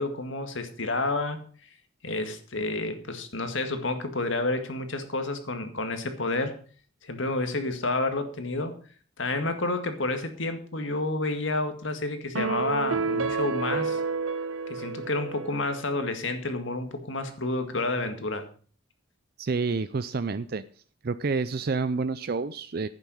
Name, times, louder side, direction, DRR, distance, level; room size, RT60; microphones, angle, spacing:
voice 1, 0.0-1.4 2.0-6.6 7.0-8.7 9.2-14.0 14.7-18.4, left 2 dB, 65° left, 7 dB, 2.0 m, -30 dB
sound 1, 12.3-15.8, right 4 dB, 80° right, 0.9 m, -30 dB
voice 2, 19.4-20.6 21.0-22.9, right 4 dB, 50° right, 13 dB, 0.5 m, -28 dB
10.5 x 9.2 x 6.3 m, 0.43 s
head